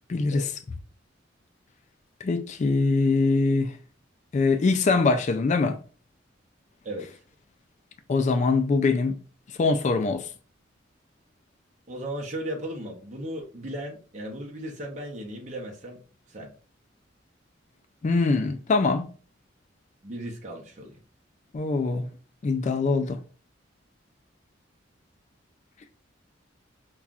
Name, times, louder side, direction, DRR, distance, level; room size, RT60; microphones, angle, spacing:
voice 1, 0.1-0.5 2.2-3.7 4.3-5.8 8.1-9.2 9.6-10.3 18.0-19.1 21.5-22.1 22.4-23.2, left 3 dB, 40° left, 0.3 m, -23 dB
voice 2, 11.9-16.0 16.3-16.5 20.0-21.0, right 1 dB, 40° right, 0.8 m, -36 dB
5.5 x 2.3 x 2.4 m
head